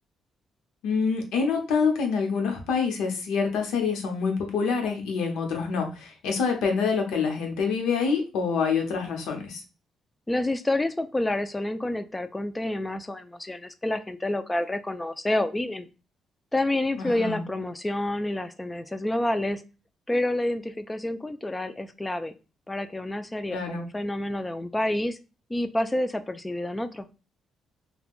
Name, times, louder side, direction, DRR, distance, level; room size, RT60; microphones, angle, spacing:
voice 1, 0.8-9.6 16.9-17.5 23.5-23.9, left 5 dB, 90° left, 3 dB, 0.7 m, -26 dB
voice 2, 10.3-15.9 16.5-19.6 20.1-22.3 22.7-25.2 25.5-27.1, left 1 dB, 15° left, 10 dB, 0.3 m, -28 dB
3.5 x 2.2 x 2.4 m, 0.31 s
cardioid pair, 90°, 0 cm